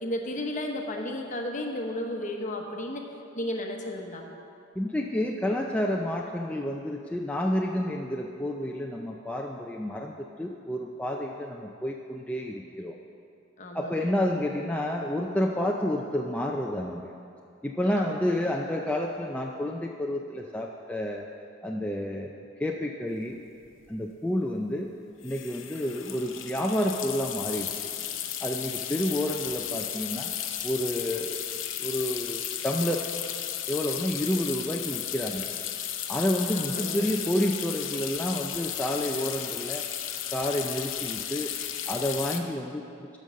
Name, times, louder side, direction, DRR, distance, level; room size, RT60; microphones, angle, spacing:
voice 1, 0.0-3.0 3.3-4.3 13.6-14.1 18.0-18.5 36.5-37.0, left 1 dB, 40° left, 2 dB, 1.0 m, -34 dB
voice 2, 4.8-12.9 13.7-17.1 17.6-21.3 21.6-22.3 22.6-23.4 23.9-24.9 25.2-27.9 28.4-30.3 30.6-31.4 31.8-33.0 33.7-35.5 36.1-39.8 40.3-41.5 41.9-42.8, left 1 dB, 5° left, 0 dB, 0.4 m, -29 dB
untitled sink water, 23.3-23.4 23.6-23.9 25.2-42.4, left 10 dB, 75° left, 0.7 m, -34 dB
13.0 x 5.4 x 6.3 m, 2.6 s
head